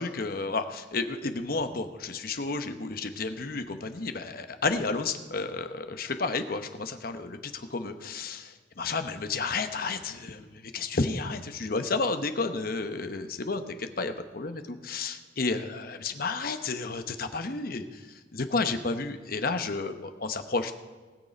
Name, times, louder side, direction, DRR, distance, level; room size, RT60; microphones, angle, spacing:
voice 1, 0.0-18.0 18.3-20.7, left 3 dB, 50° left, 8 dB, 0.9 m, -31 dB
19.5 x 6.7 x 5.1 m, 1.4 s
head